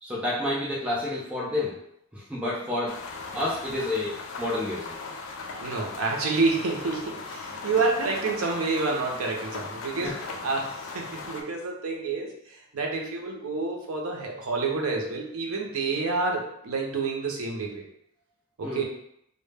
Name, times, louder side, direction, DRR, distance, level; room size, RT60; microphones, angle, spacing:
voice 1, 0.0-2.9 3.3-4.9 10.0-10.1 18.6-18.8, left 1 dB, 5° right, -7 dB, 0.4 m, -30 dB
sound 1, 2.9-11.4, left 4 dB, 60° left, 0.3 m, -38 dB
voice 2, 5.6-17.8 18.6-18.8, right 3 dB, 80° right, 0 dB, 0.5 m, -28 dB
2.1 x 2.0 x 3.3 m, 0.73 s
head